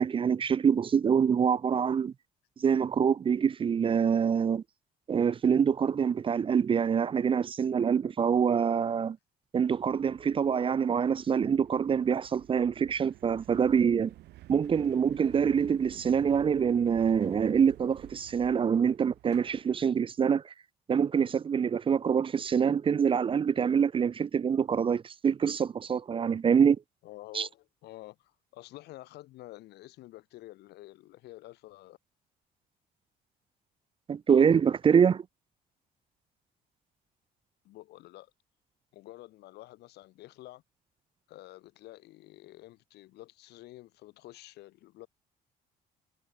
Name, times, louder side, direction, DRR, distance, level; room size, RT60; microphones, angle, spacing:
voice 1, 0.0-2.1 2.6-4.6 5.1-9.2 9.5-14.1 14.5-20.5 20.9-26.8 27.3-27.5 34.1-35.2, right 7 dB, 30° right, 0.6 m, -25 dB
sound 1, 9.7-19.9, right 16 dB, 80° right, 6.3 m, -52 dB
voice 2, 27.0-32.0 37.6-38.3 38.9-40.6 41.3-45.1, left 17 dB, 80° left, 2.3 m, -49 dB
cardioid pair, 110°, 17 cm